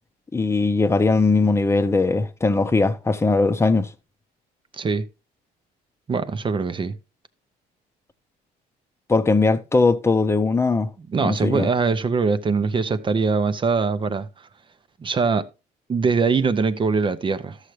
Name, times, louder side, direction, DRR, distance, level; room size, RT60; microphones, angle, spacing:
voice 1, 0.3-3.9 9.1-10.9 11.2-11.7, left 3 dB, 15° left, 0.8 m, -20 dB
voice 2, 4.7-5.1 6.1-7.0 11.0-14.3 15.0-15.5 15.9-17.6, right 4 dB, 30° right, 0.7 m, -22 dB
13.0 x 6.5 x 3.1 m
cardioid pair, 110°, 17 cm